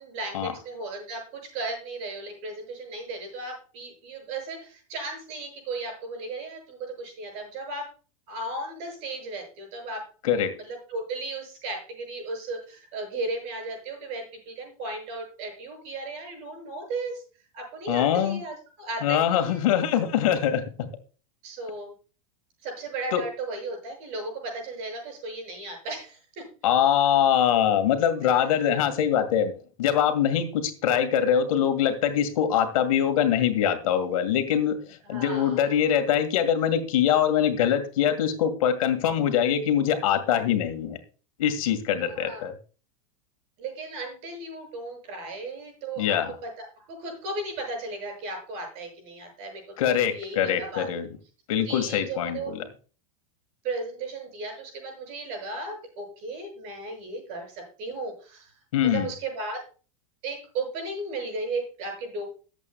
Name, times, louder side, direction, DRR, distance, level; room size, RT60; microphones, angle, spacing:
voice 1, 0.0-7.9 8.3-10.1 10.6-17.2 17.5-19.6 21.4-21.9 22.6-26.4 28.2-28.4 35.0-35.7 42.1-42.4 43.6-50.9 51.6-52.5 53.6-58.5 58.8-59.6 60.2-62.2, right 2 dB, 40° right, 2 dB, 7.5 m, -35 dB
voice 2, 10.2-10.5 17.9-18.4 19.0-20.9 23.1-23.2 26.6-29.5 29.8-41.0 41.4-42.5 46.0-46.3 49.8-51.1 51.5-52.6 58.7-59.1, left 9 dB, 75° left, 8 dB, 2.0 m, -23 dB
21.0 x 8.3 x 2.3 m, 0.37 s
supercardioid pair, 180°, 18 cm